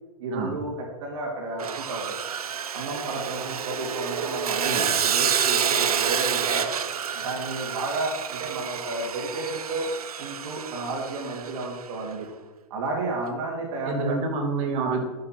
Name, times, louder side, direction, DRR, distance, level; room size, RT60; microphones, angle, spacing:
voice 1, 0.2-2.2 2.7-6.7 7.1-9.9 10.2-12.3 12.7-14.2, right 2 dB, 55° right, -2 dB, 2.5 m, -32 dB
Sawing, 1.6-11.8, right 8 dB, 85° right, 0.7 m, -28 dB
voice 2, 13.9-15.1, right 3 dB, 35° right, -1 dB, 3.0 m, -27 dB
12.0 x 6.6 x 4.5 m, 1.1 s
hypercardioid pair, 125°, 19 cm